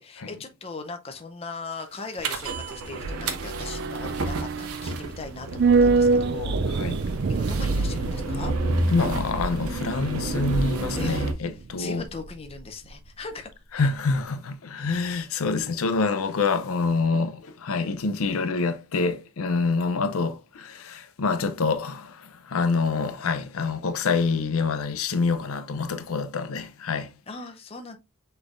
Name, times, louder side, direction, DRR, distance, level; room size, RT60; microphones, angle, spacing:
voice 1, 0.0-6.8 7.3-8.5 10.9-11.1 11.8-13.5 13.8-13.9 27.3-28.0, left 3 dB, 25° left, 0.5 m, -39 dB
sound 1, 2.2-12.6 12.9-13.0, right 4 dB, 50° right, 0.3 m, -27 dB
sound 2, 2.2-11.3, right 2 dB, 90° right, 0.8 m, -30 dB
voice 2, 8.9-12.0 13.7-27.1, left 4 dB, 80° left, 0.6 m, -26 dB
6.1 x 3.3 x 2.4 m
head